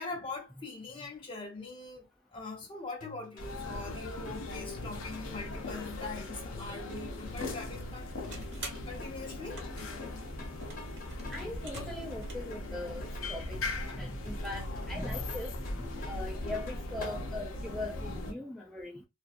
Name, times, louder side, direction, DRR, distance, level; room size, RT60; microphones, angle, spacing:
voice 1, 0.0-2.1 2.3-8.2 8.9-9.6, left 3 dB, 25° left, 0.9 m, -42 dB
sound 1, 3.0-17.2, left 2 dB, 45° left, 1.2 m, -50 dB
sound 2, 3.4-18.3, left 2 dB, 75° left, 0.6 m, -39 dB
sound 3, 8.0-12.6, right 3 dB, 60° right, 1.3 m, -49 dB
voice 2, 11.3-19.0, left 2 dB, ahead, 0.3 m, -41 dB
2.6 x 2.4 x 2.4 m
head